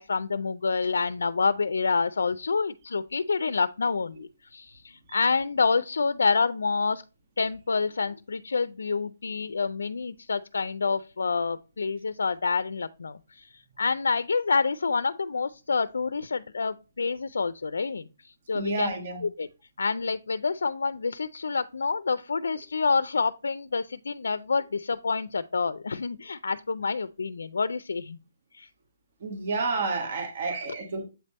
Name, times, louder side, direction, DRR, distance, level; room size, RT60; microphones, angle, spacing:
voice 1, 0.0-7.0 7.4-18.1 18.5-18.9 19.2-19.5 19.8-28.2 28.5-28.7, left 4 dB, 85° left, 15 dB, 0.4 m, -28 dB
voice 2, 18.5-19.2 29.2-31.0, right 3 dB, 40° right, 2 dB, 1.4 m, -30 dB
7.9 x 3.3 x 4.1 m, 0.30 s
hypercardioid pair, 170°, 0 cm